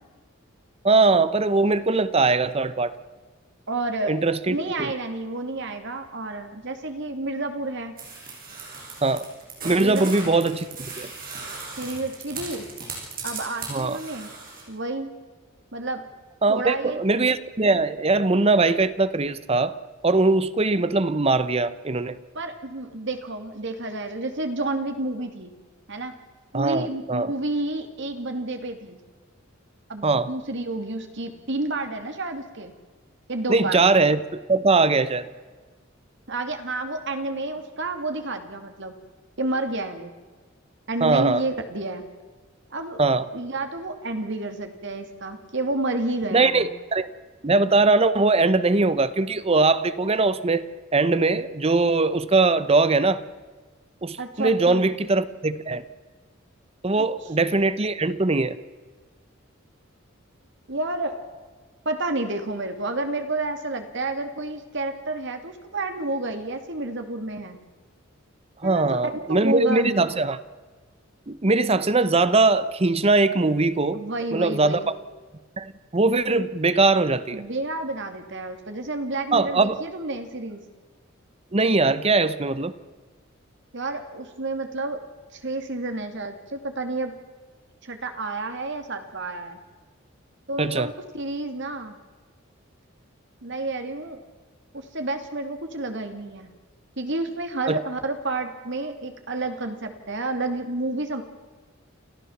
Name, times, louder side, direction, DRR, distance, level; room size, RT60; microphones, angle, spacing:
voice 1, 0.8-2.9 4.1-4.9 9.0-9.2 9.6-10.6 11.0-11.1 13.7-14.0 16.4-19.8 20.0-22.2 26.5-27.3 30.0-30.3 33.5-35.3 41.0-41.4 43.0-43.2 46.3-47.1 47.4-50.6 50.9-53.2 54.0-55.8 56.8-58.6 68.6-70.4 71.3-74.0 74.3-74.8 75.6-77.4 79.3-79.8 81.5-82.7 90.6-90.9 97.7-97.8, right 3 dB, 30° right, 0.8 m, -21 dB
voice 2, 3.7-4.1 4.5-7.9 9.8-10.0 11.8-12.7 13.2-14.3 14.7-15.1 15.7-16.0 16.5-17.0 22.3-25.5 25.9-26.2 26.5-29.0 29.9-32.7 33.3-33.8 36.3-39.0 39.4-40.1 40.9-42.0 42.7-43.0 43.3-46.7 54.2-54.8 57.0-57.1 60.7-61.2 61.8-67.6 68.6-69.0 69.3-70.1 73.9-74.9 77.3-80.6 83.7-85.0 85.3-87.1 87.8-89.6 90.5-91.9 93.4-94.2 94.7-96.5 97.0-101.2, right 2 dB, 60° right, 2.7 m, -30 dB
sound 1, 8.0-14.6, right 4 dB, 45° right, 7.7 m, -37 dB
29.5 x 14.5 x 7.3 m
head